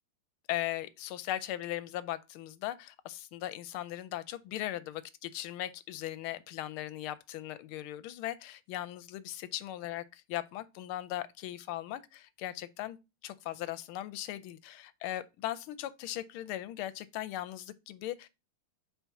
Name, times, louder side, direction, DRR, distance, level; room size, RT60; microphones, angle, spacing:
voice 1, 0.5-13.0 13.2-18.3, left 14 dB, 85° left, 1.4 m, -38 dB
4.5 x 4.3 x 5.7 m
omnidirectional pair, 2.3 m